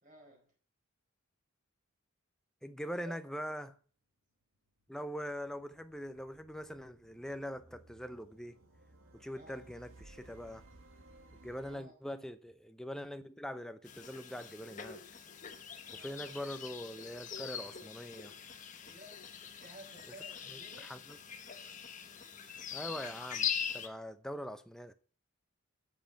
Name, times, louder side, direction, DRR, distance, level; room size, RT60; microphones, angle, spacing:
voice 1, 0.0-0.5 3.0-3.1 9.3-9.6 11.6-11.9 15.8-16.1 18.8-20.9, right 1 dB, 35° right, 4.4 m, -55 dB
voice 2, 2.6-3.8 4.9-8.6 9.1-10.6 11.4-15.0 15.9-18.4 20.5-21.2 22.7-24.9, equal, 5° left, 0.7 m, -43 dB
sound 1, 4.5-11.8, right 2 dB, 75° right, 1.9 m, -60 dB
sound 2, 13.8-23.9, left 8 dB, 35° left, 1.1 m, -42 dB
8.8 x 7.4 x 8.9 m
head